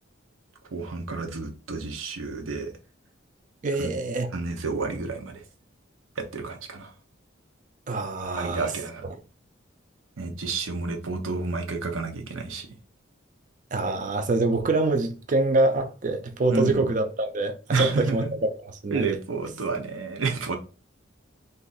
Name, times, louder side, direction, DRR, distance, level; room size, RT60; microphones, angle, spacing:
voice 1, 0.7-2.7 3.8-3.9 4.3-5.4 6.2-6.9 8.4-9.0 10.2-12.7 16.5-16.8 17.7-18.4 18.9-20.6, right 4 dB, 90° right, 0.7 m, -30 dB
voice 2, 3.6-4.3 7.9-8.7 9.1-9.2 13.7-18.2 18.6-19.2, right 2 dB, 40° right, 0.4 m, -25 dB
2.6 x 2.4 x 3.9 m
head